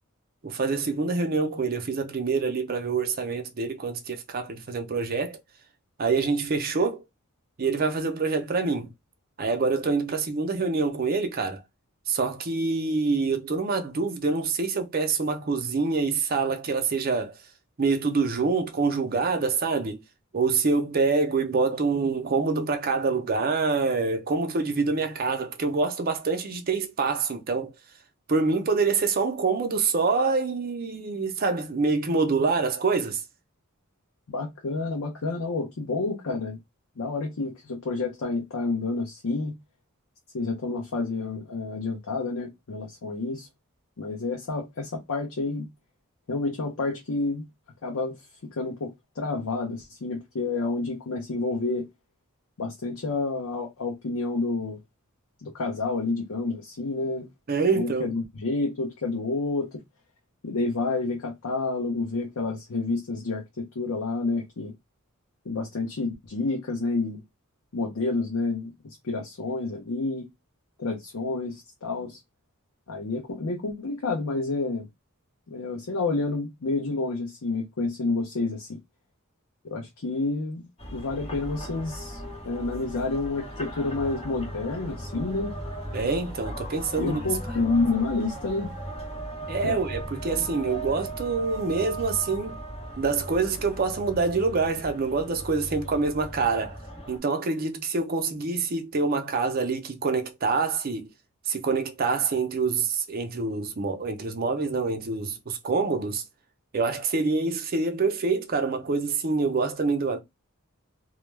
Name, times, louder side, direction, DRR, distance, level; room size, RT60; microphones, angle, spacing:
voice 1, 0.4-5.4 6.0-7.0 7.6-8.9 9.4-11.6 12.1-17.4 17.8-20.0 20.3-27.7 28.3-33.2 57.5-58.1 85.9-87.2 89.5-92.6 93.0-96.8 97.1-101.1 101.5-106.2 106.7-110.2, right 4 dB, 45° right, 0.5 m, -26 dB
voice 2, 34.3-36.6 37.0-39.6 40.3-43.5 44.0-45.7 46.3-47.4 47.8-48.2 48.5-51.9 52.6-54.8 55.4-57.3 57.7-59.8 60.4-64.7 65.4-67.2 67.7-70.3 70.8-72.2 72.9-74.9 75.5-78.8 79.6-80.6 80.9-82.2 82.5-85.5 87.0-88.7 89.6-89.8, left 3 dB, 80° left, 0.6 m, -29 dB
sound 1, 80.8-97.2, right 1 dB, 25° left, 0.8 m, -37 dB
2.2 x 2.2 x 3.1 m
head